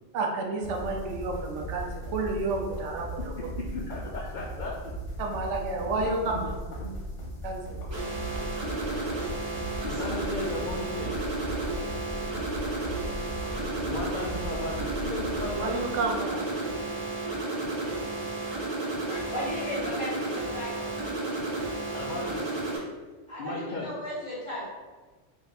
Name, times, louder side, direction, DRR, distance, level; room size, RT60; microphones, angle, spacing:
voice 1, 0.1-3.3 5.2-6.3 7.4-7.8 15.5-16.5, right 3 dB, 75° right, 1 dB, 0.9 m, -30 dB
sound 1, 0.6-16.1, right 1 dB, 80° left, 1.2 m, -38 dB
voice 2, 3.7-4.9 5.9-6.0 6.3-6.5 6.8-6.9 9.8-11.2 13.8-15.8 21.9-22.4 23.4-23.9, left 2 dB, 55° left, -3 dB, 0.5 m, -35 dB
sound 2, 7.9-22.8, right 2 dB, 30° right, 0.7 m, -32 dB
voice 3, 19.0-20.9 23.3-24.7, left 1 dB, 25° left, -9 dB, 1.5 m, -35 dB
3.6 x 2.4 x 4.0 m, 1.3 s
omnidirectional pair, 1.2 m